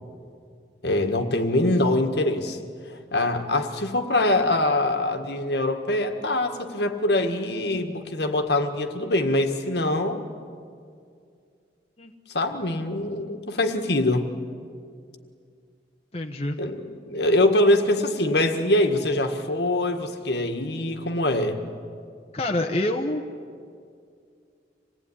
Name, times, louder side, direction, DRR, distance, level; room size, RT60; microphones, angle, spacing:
voice 1, 0.8-2.6 3.1-10.3 12.3-14.3 16.6-21.6, left 1 dB, 65° left, 6 dB, 1.7 m, -23 dB
voice 2, 16.1-16.6 22.3-23.3, left 1 dB, 35° left, 2 dB, 1.1 m, -26 dB
26.0 x 19.0 x 10.0 m, 2.3 s
head